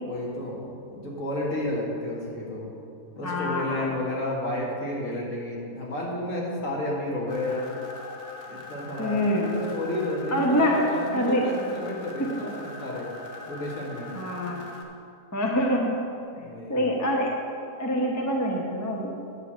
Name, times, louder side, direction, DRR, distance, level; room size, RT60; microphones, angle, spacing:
voice 1, 0.1-2.7 3.2-7.7 8.5-9.2 9.5-13.1 13.5-14.1 16.4-16.8, left 1 dB, 60° left, -4 dB, 2.0 m, -31 dB
voice 2, 3.2-3.9 9.0-9.6 10.3-10.8 11.1-11.4 14.1-14.7 15.3-15.9 16.7-17.3 17.8-19.1, equal, 15° left, -1 dB, 0.8 m, -25 dB
sound 1, 7.3-14.8, left 2 dB, 35° left, 1.0 m, -42 dB
9.3 x 4.8 x 7.4 m, 2.6 s
omnidirectional pair, 1.6 m